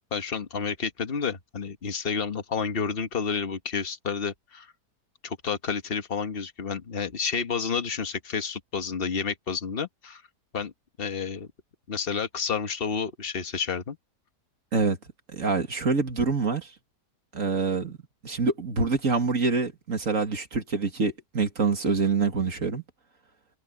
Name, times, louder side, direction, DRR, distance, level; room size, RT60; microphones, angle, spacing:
voice 1, 0.1-4.7 5.2-10.2 10.5-10.7 11.0-11.5 11.9-14.0, left 6 dB, 35° left, 1.5 m, -30 dB
voice 2, 15.3-16.7 17.3-18.0 18.2-22.8, right 4 dB, 50° right, 2.6 m, -26 dB
omnidirectional pair, 1.8 m